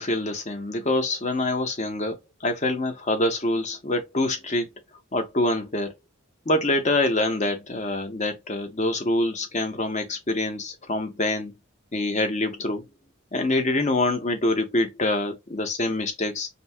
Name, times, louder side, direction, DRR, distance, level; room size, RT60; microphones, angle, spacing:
voice 1, 0.0-4.7 5.1-6.0 6.5-11.5 11.9-12.8 13.3-16.5, left 2 dB, 35° left, 0.7 m, -25 dB
2.7 x 2.2 x 3.3 m
head